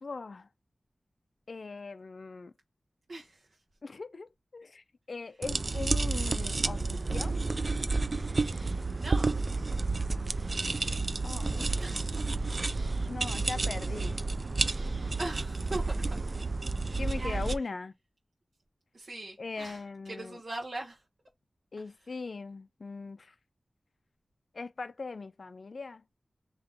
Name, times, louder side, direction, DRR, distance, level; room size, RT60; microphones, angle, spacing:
voice 1, 0.0-0.5 1.5-2.5 3.8-4.3 4.5-7.4 11.2-11.7 13.1-14.2 17.0-17.9 19.4-20.4 21.7-23.3 24.5-26.0, left 4 dB, 65° left, 0.3 m, -40 dB
voice 2, 3.1-3.4 9.0-9.4 11.8-12.1 12.9-13.1 15.2-15.8 18.9-21.0, right 2 dB, 75° right, 1.0 m, -40 dB
sound 1, 5.4-17.6, right 3 dB, 50° right, 0.3 m, -30 dB
3.5 x 2.8 x 3.5 m
wide cardioid pair, 75°, 0 cm